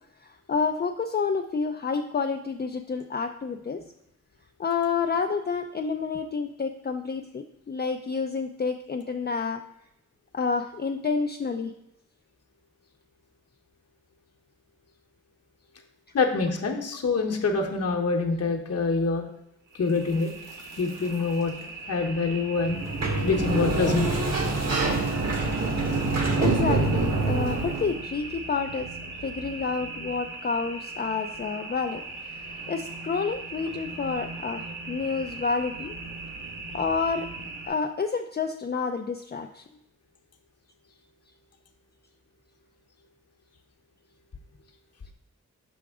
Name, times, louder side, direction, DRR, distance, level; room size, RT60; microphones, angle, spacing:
voice 1, 0.2-3.8 4.6-9.6 10.3-11.7 26.4-28.9 29.2-32.0 32.3-35.9 36.7-37.3 37.7-39.6, left 5 dB, 35° left, 6 dB, 0.5 m, -29 dB
voice 2, 16.1-19.2 19.8-20.3 20.8-21.5 21.9-22.8 23.2-24.1, left 4 dB, 50° left, 2 dB, 1.0 m, -25 dB
sound 1, 19.7-37.7, right 3 dB, 85° right, 1.9 m, -39 dB
Sliding door, 22.6-28.0, right 3 dB, 55° right, 1.4 m, -25 dB
6.1 x 5.7 x 3.6 m, 0.80 s
cardioid pair, 65°, 31 cm